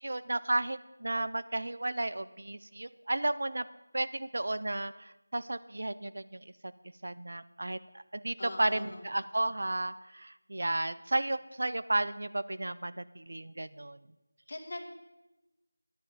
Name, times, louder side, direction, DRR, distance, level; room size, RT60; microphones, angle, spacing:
voice 1, 0.0-3.7 3.9-6.4 7.0-14.0, right 2 dB, 60° right, 14 dB, 0.5 m, -33 dB
voice 2, 8.4-9.0 14.5-14.8, left 2 dB, 45° left, 4 dB, 1.6 m, -41 dB
10.5 x 10.0 x 5.0 m, 0.99 s
figure-of-eight pair, 175°, 0 cm